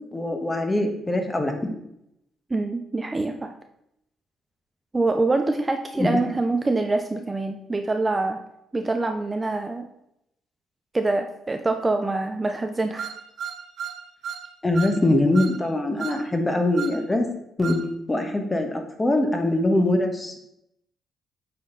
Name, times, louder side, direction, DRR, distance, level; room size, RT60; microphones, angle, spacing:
voice 1, 0.1-1.7 6.0-6.2 14.6-17.2 17.6-17.8 18.1-20.4, left 1 dB, 15° left, 4 dB, 1.3 m, -23 dB
voice 2, 2.5-3.5 4.9-8.4 8.7-9.9 10.9-13.1, right 2 dB, 20° right, 6 dB, 0.5 m, -25 dB
sound 1, 13.0-14.5 14.7-15.0 15.3-15.6 16.0-16.2 16.7-17.0 17.6-17.8, right 8 dB, 65° right, 0.7 m, -34 dB
8.2 x 4.3 x 4.0 m, 0.80 s
cardioid pair, 90°, 0 cm